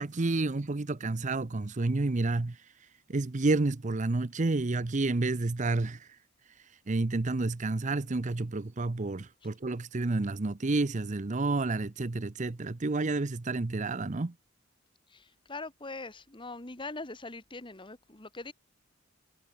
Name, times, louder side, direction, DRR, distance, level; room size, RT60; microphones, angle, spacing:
voice 1, 0.0-2.6 3.1-6.1 6.9-14.3, right 2 dB, 35° right, 0.7 m, -30 dB
voice 2, 15.1-18.5, left 3 dB, 25° left, 1.7 m, -42 dB
head